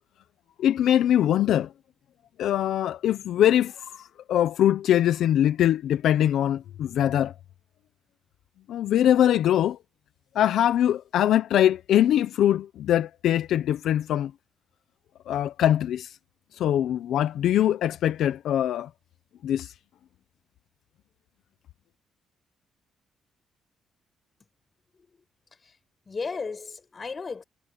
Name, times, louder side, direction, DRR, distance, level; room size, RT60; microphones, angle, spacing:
voice 1, 0.6-1.7 2.4-7.3 8.7-9.8 10.3-14.3 15.3-16.1 16.6-18.9 19.4-19.7, left 11 dB, 75° left, 0.8 m, -22 dB
voice 2, 26.1-27.4, left 4 dB, 35° left, 7.6 m, -35 dB
cardioid pair, 90°, 0 cm